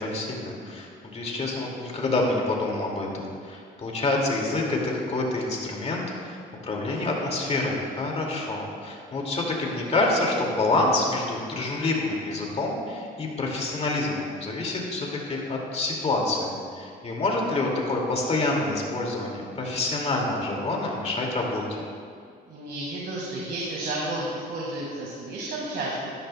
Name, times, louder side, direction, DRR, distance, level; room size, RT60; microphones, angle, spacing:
voice 1, 0.0-6.4 6.6-21.6, left 2 dB, 35° left, -1 dB, 2.2 m, -27 dB
voice 2, 22.5-26.1, right 1 dB, 70° right, -4 dB, 1.8 m, -32 dB
13.0 x 11.0 x 2.2 m, 2.2 s
cardioid pair, 85°, 18 cm